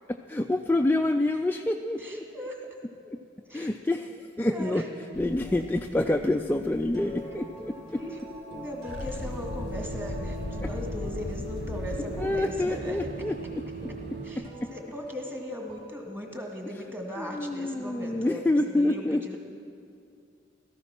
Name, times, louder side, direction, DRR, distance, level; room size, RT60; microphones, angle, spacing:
voice 1, 0.3-2.2 3.5-4.8 5.2-7.5 12.2-13.3 17.2-19.4, left 1 dB, 10° left, 5 dB, 0.3 m, -27 dB
voice 2, 2.0-2.6 3.5-3.7 4.5-4.9 7.2-7.4 7.9-8.2 8.5-13.1 14.2-14.4 14.7-19.4, left 1 dB, 15° right, 1 dB, 1.9 m, -38 dB
sound 1, 5.1-8.0 8.3-8.5 8.7-12.6, left 2 dB, 65° left, 0.6 m, -38 dB
sound 2, 5.4-15.8, right 1 dB, 30° right, 2.8 m, -46 dB
sound 3, 9.2-14.3, right 3 dB, 60° right, 2.0 m, -39 dB
16.5 x 14.0 x 5.9 m, 2.5 s
head